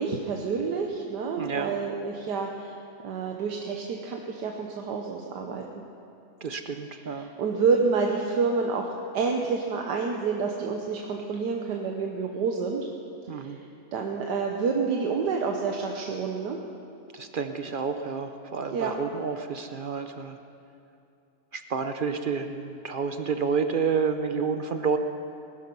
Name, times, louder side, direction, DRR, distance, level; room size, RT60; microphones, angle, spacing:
voice 1, 0.0-2.7 3.0-5.6 7.1-8.9 9.1-12.8 13.3-13.6 13.9-16.6 18.7-19.0, right 5 dB, 85° right, 1 dB, 1.6 m, -28 dB
voice 2, 1.4-1.8 6.4-7.3 13.3-13.6 17.1-20.4 21.5-25.0, right 5 dB, 55° right, 7 dB, 0.5 m, -29 dB
20.5 x 12.5 x 5.4 m, 2.7 s
omnidirectional pair, 1.7 m